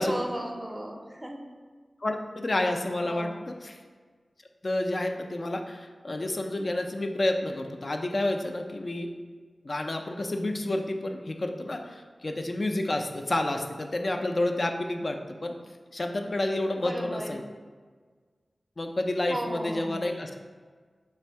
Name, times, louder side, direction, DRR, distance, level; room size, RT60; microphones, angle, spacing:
voice 1, 0.0-1.4 3.0-3.4 16.8-17.4 19.3-20.2, right 1 dB, 20° right, 2 dB, 0.5 m, -35 dB
voice 2, 2.0-3.8 4.6-9.1 9.6-15.5 15.9-17.4 18.8-20.3, left 1 dB, 50° left, 4 dB, 0.4 m, -30 dB
3.3 x 2.6 x 4.4 m, 1.5 s
cardioid pair, 50°, 0 cm